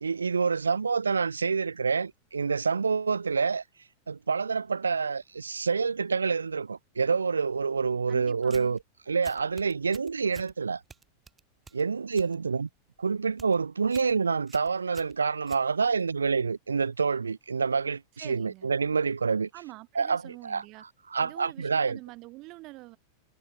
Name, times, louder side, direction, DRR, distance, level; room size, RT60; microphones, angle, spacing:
voice 1, 0.0-3.6 4.1-8.8 9.1-10.8 11.7-12.7 13.0-19.5 20.0-20.6 21.1-22.0, right 5 dB, 75° right, 0.5 m, -27 dB
voice 2, 8.1-8.8 18.2-18.7 19.5-20.8 21.2-23.0, right 21 dB, 40° right, 2.8 m, -46 dB
sound 1, 8.4-8.8 9.2-10.5 10.9-12.3 12.7-13.0 13.3-13.6 13.9-14.1 14.5-16.1, right 5 dB, 15° right, 6.5 m, -51 dB
figure-of-eight pair, 90°, 0 cm